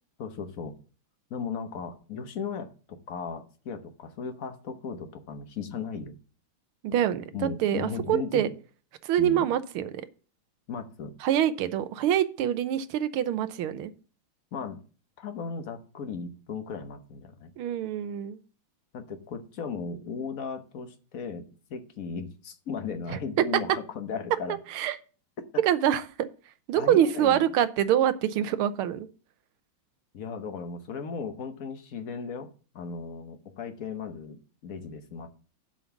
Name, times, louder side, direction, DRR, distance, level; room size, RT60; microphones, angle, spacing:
voice 1, 0.2-0.7 1.3-6.2 7.3-8.5 9.2-9.5 10.7-11.1 14.5-14.8 15.2-17.5 18.9-24.6 26.8-27.4 30.1-32.5 32.7-35.3, left 5 dB, 50° left, 7 dB, 1.2 m, -36 dB
voice 2, 6.8-8.5 9.0-9.9 11.2-13.9 17.6-18.4 23.1-23.2 24.7-25.0 25.6-26.0 26.7-29.1, right 10 dB, 85° right, 12 dB, 1.6 m, -25 dB
7.6 x 5.3 x 7.1 m, 0.38 s
omnidirectional pair, 2.3 m